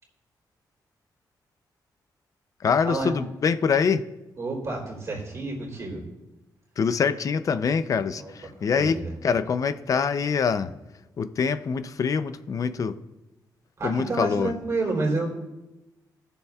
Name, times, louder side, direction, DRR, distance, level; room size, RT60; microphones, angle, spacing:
voice 1, 2.6-4.0 6.8-10.7 11.2-12.9 13.8-14.5, left 6 dB, 50° left, 12 dB, 0.5 m, -25 dB
voice 2, 4.4-6.0 8.2-8.3 8.7-9.1 13.8-15.3, right 2 dB, 45° right, -2 dB, 3.2 m, -29 dB
19.0 x 7.0 x 2.4 m, 0.99 s
wide cardioid pair, 130°, 7 cm